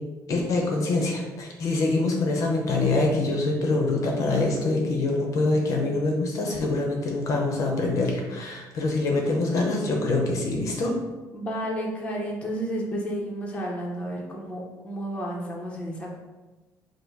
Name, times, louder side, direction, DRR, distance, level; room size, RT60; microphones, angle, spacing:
voice 1, 0.3-10.9, left 2 dB, 50° left, 1 dB, 0.7 m, -25 dB
voice 2, 11.3-16.2, equal, 15° left, -3 dB, 0.8 m, -31 dB
5.2 x 2.1 x 4.6 m, 1.2 s
cardioid pair, 155°, 7 cm